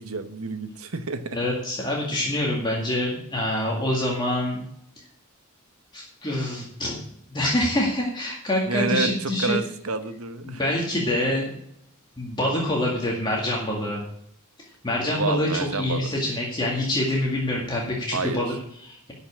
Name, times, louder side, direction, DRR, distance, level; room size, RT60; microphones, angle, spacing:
voice 1, 0.0-1.4 8.7-10.6 15.0-16.1 18.1-18.4, right 3 dB, 75° right, 9 dB, 1.2 m, -29 dB
voice 2, 1.3-4.6 5.9-7.0 7.3-9.6 10.4-11.6 12.2-14.0 14.8-19.1, left 1 dB, 20° left, -2 dB, 2.1 m, -26 dB
12.0 x 5.6 x 8.6 m, 0.72 s
head